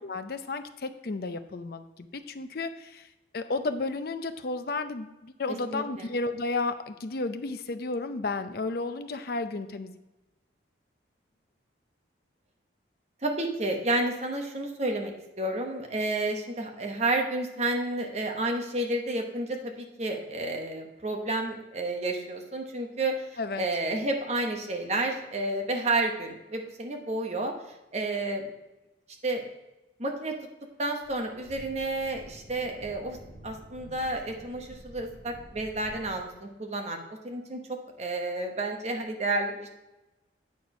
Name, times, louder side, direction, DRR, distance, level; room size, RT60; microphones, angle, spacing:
voice 1, 0.0-3.1 3.3-10.0 23.4-23.7, left 3 dB, 55° left, 9 dB, 0.5 m, -33 dB
voice 2, 5.7-6.1 13.2-15.1 15.4-27.5 27.9-28.5 29.2-29.4 30.0-30.3 30.8-33.2 33.4-37.0 37.2-39.7, right 2 dB, 35° right, 3 dB, 1.0 m, -30 dB
sound 1, 30.6-30.7 31.0-36.2, right 1 dB, 80° right, 1.9 m, -49 dB
8.4 x 4.5 x 5.2 m, 1.0 s
head